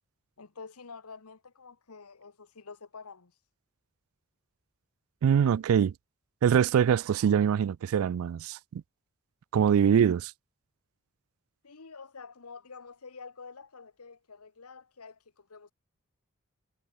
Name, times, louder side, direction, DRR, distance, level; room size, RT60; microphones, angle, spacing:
voice 1, 0.4-3.3 11.6-15.7, left 4 dB, 85° left, 1.2 m, -48 dB
voice 2, 5.2-5.9 6.4-8.8 9.5-10.3, right 8 dB, 70° right, 0.3 m, -24 dB
head